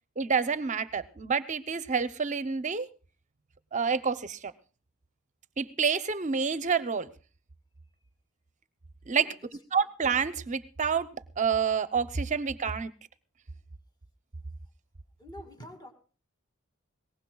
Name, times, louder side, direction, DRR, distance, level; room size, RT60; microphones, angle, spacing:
voice 1, 0.2-2.9 3.7-4.5 5.6-7.1 9.1-9.3 9.7-11.1 11.4-12.9, right 6 dB, 35° right, 13 dB, 0.6 m, -28 dB
voice 2, 9.2-9.6 15.2-15.9, left 1 dB, 20° left, 5 dB, 2.4 m, -46 dB
22.0 x 18.5 x 2.3 m, 0.38 s
head